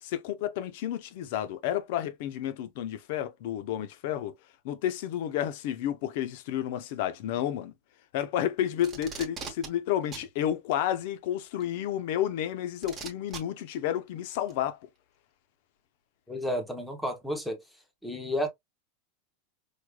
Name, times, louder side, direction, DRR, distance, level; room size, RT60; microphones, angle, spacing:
voice 1, 0.0-4.3 4.6-7.7 8.1-14.8, left 11 dB, 50° left, 0.5 m, -31 dB
Packing tape duct tape, 8.8-9.7 10.1-10.3 11.6-11.7 12.8-13.4 14.5-14.6, right 5 dB, 15° right, 0.9 m, -39 dB
voice 2, 16.3-17.6 18.0-18.5, equal, ahead, 0.7 m, -31 dB
4.7 x 2.1 x 2.2 m
supercardioid pair, 170°, 0 cm